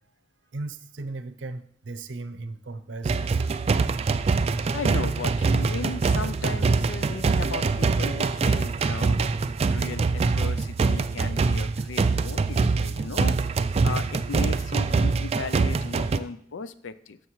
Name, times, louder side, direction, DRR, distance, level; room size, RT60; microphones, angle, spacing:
voice 1, 0.5-3.4, right 2 dB, 75° right, 10 dB, 0.6 m, -37 dB
sound 1, 3.0-16.2, right 4 dB, 35° right, 0.3 m, -24 dB
voice 2, 4.7-9.2 9.7-13.4 13.8-17.2, left 4 dB, 90° left, 13 dB, 0.5 m, -36 dB
12.5 x 6.9 x 3.1 m, 0.66 s
head